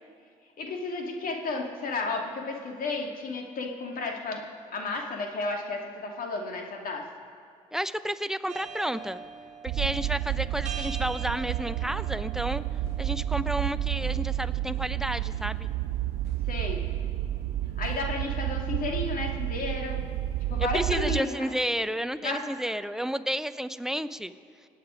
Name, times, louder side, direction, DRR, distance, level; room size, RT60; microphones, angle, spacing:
voice 1, 0.6-4.4 4.7-7.1 16.5-16.8 17.8-20.0 20.5-21.3 22.2-22.5, left 3 dB, 55° left, 2 dB, 2.5 m, -32 dB
voice 2, 7.7-9.2 9.6-12.6 13.0-15.7 20.6-24.3, equal, 5° right, 12 dB, 0.8 m, -31 dB
sound 1, 8.5-20.6, right 5 dB, 45° right, 1.4 m, -46 dB
sound 2, 9.7-21.2, right 14 dB, 65° right, 0.4 m, -30 dB
sound 3, 11.8-12.0 12.8-13.1 14.0-14.2 15.3-15.5 16.2-16.4 17.8-18.1, left 5 dB, 75° left, 2.8 m, -46 dB
26.0 x 9.0 x 5.1 m, 2.4 s
hypercardioid pair, 55°, 17 cm